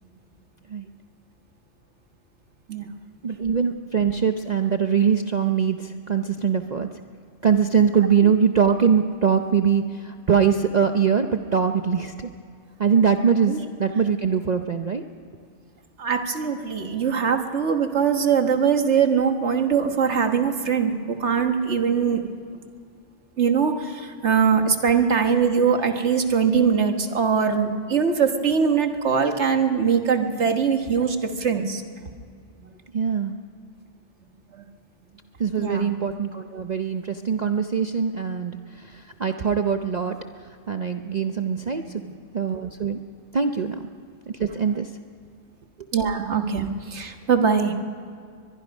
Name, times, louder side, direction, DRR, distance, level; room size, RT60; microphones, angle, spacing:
voice 1, 3.2-6.9 7.4-12.3 12.8-15.0 32.9-33.4 35.4-40.2 40.7-42.0 42.3-43.0 43.3-43.9 44.3-44.9, right 7 dB, 40° right, 6 dB, 0.7 m, -22 dB
voice 2, 16.0-22.2 23.4-31.8 35.6-35.9 41.9-42.0 45.9-47.7, right 6 dB, 70° right, 6 dB, 1.7 m, -22 dB
22.5 x 22.0 x 5.4 m, 2.2 s
omnidirectional pair, 1.2 m